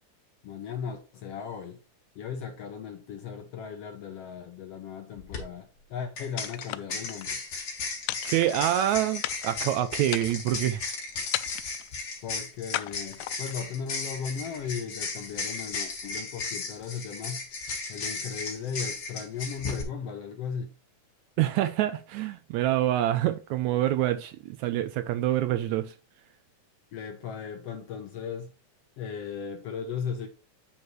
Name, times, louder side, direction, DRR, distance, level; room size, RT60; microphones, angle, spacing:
voice 1, 0.4-1.8 2.1-7.4 12.2-17.4 17.9-20.7 26.9-28.5 29.0-30.3, left 6 dB, 70° left, 1.5 m, -37 dB
sound 1, 5.2-5.4 6.2-19.8, left 4 dB, 45° left, 2.8 m, -35 dB
sound 2, 6.4-7.3 8.1-8.9 9.2-9.7 10.1-10.6 11.3-11.9 12.7-13.6, left 16 dB, 85° left, 2.1 m, -35 dB
voice 2, 8.3-10.8 21.4-25.9, right 13 dB, 80° right, 1.8 m, -26 dB
8.1 x 7.0 x 3.1 m
omnidirectional pair, 3.6 m